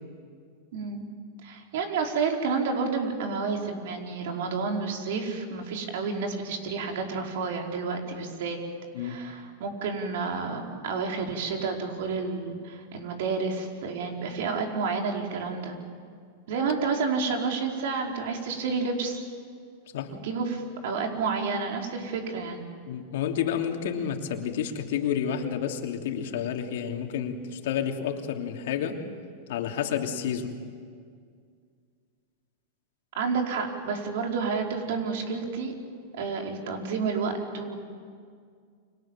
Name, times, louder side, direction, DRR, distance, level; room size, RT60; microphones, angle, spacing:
voice 1, 0.7-1.1 1.4-8.6 9.0-15.8 16.5-19.2 20.2-22.7 33.1-35.7 36.2-37.8, right 4 dB, 70° right, 2 dB, 4.9 m, -30 dB
voice 2, 22.9-29.0 29.5-30.6, left 8 dB, 70° left, 3 dB, 3.0 m, -30 dB
30.0 x 25.5 x 7.6 m, 2.1 s
hypercardioid pair, 115°, 0 cm